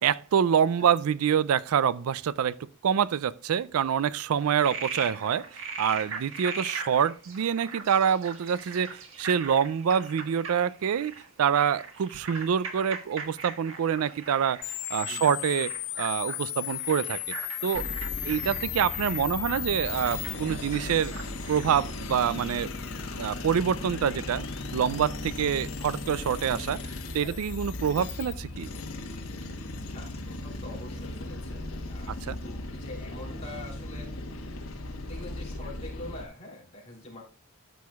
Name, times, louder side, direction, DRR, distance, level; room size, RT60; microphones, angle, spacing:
voice 1, 0.0-2.6 2.8-5.4 5.8-14.6 14.9-15.7 16.0-17.2 17.6-17.8 18.3-21.1 21.5-22.7 23.2-24.5 24.7-26.8 27.1-28.7 32.3-32.4, right 8 dB, 75° right, 0.4 m, -26 dB
Frog, 4.4-21.8, right 5 dB, 60° right, 1.5 m, -40 dB
sound 1, 14.6-28.3, left 18 dB, 55° left, 0.4 m, -38 dB
voice 2, 15.1-15.4 27.2-27.4 29.9-31.6 31.9-34.1 35.1-37.2, left 1 dB, 30° left, 3.4 m, -44 dB
sound 2, 17.7-36.2, left 2 dB, 70° left, 1.3 m, -37 dB
13.0 x 6.2 x 2.4 m
head